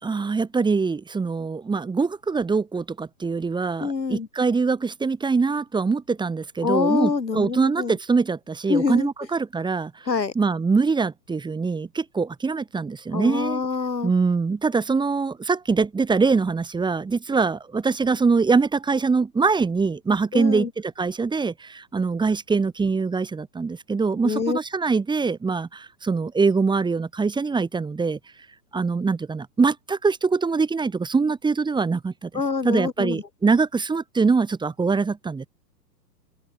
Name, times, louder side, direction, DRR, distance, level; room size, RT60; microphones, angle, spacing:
voice 1, 0.0-9.9 10.3-13.6 14.0-28.2 28.7-32.3 32.6-35.5, right 4 dB, 10° right, 3.3 m, -23 dB
voice 2, 3.8-4.3 6.6-8.0 8.7-9.1 10.1-10.3 13.1-14.1 20.3-20.7 24.2-24.6 32.3-33.2, left 4 dB, 90° left, 2.6 m, -25 dB
open air
figure-of-eight pair, 115°, 50 cm